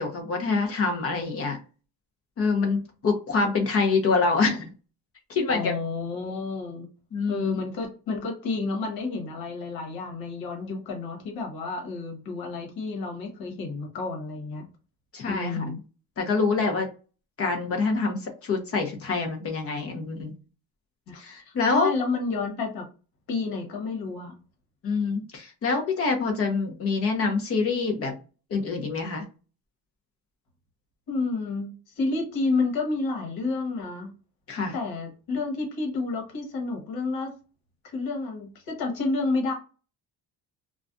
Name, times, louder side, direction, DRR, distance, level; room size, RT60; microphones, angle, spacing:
voice 1, 0.0-1.6 2.4-4.7 5.3-5.8 7.1-7.6 15.1-15.7 16.2-16.9 17.4-20.3 21.2-21.9 24.8-28.1 28.5-29.2 34.5-34.7, left 4 dB, 40° left, 3 dB, 0.7 m, -26 dB
voice 2, 5.5-6.9 7.3-14.7 15.2-15.8 21.1-22.8 23.3-24.3 31.1-34.1 34.7-37.3 37.8-39.5, left 3 dB, 75° left, 2 dB, 1.1 m, -30 dB
2.4 x 2.2 x 2.5 m, 0.34 s
cardioid pair, 155°, 38 cm